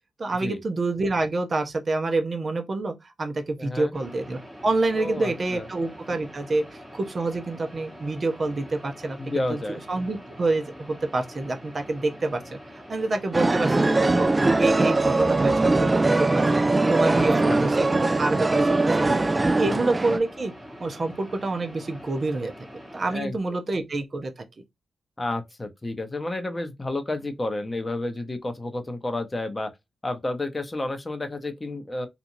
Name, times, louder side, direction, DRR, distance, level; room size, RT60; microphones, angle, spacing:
voice 1, 0.2-9.6 9.9-14.3 14.6-16.6 16.9-18.7 19.1-19.2 19.5-20.5 20.8-22.5 22.9-24.4, right 2 dB, 45° right, 0.7 m, -27 dB
voice 2, 3.6-4.0 4.9-5.7 9.2-9.8 17.1-17.7 19.6-19.8 23.1-23.6 25.2-29.7 30.0-32.1, left 2 dB, 25° left, 0.7 m, -31 dB
sound 1, 3.9-23.2, equal, 5° right, 1.1 m, -44 dB
sound 2, 13.3-20.2, right 2 dB, 25° right, 0.3 m, -21 dB
2.9 x 2.4 x 2.6 m
cardioid pair, 60°, 0 cm